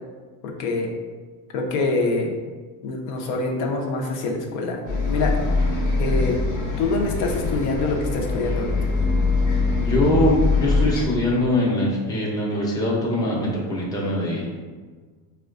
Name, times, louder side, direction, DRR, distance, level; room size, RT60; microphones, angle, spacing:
voice 1, 0.4-0.9 1.5-2.3 2.8-5.4 6.0-6.4 6.8-8.8, left 3 dB, 80° left, 0 dB, 0.7 m, -25 dB
Bus, 4.9-11.1, left 3 dB, 45° left, 0.7 m, -23 dB
voice 2, 9.8-14.6, left 1 dB, 10° left, -4 dB, 0.5 m, -22 dB
4.2 x 2.2 x 2.4 m, 1.4 s
cardioid pair, 125°, 45 cm